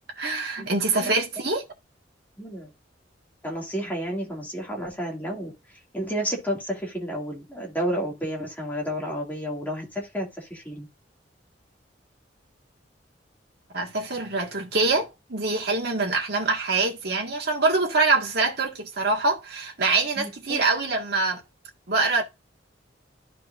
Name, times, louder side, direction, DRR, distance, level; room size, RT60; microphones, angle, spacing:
voice 1, 0.2-1.6 13.7-21.4 21.9-22.2, right 3 dB, 55° right, 1.9 m, -24 dB
voice 2, 2.4-2.7 3.4-10.9 20.2-20.6, equal, 10° left, 2.4 m, -31 dB
13.0 x 4.6 x 2.6 m
head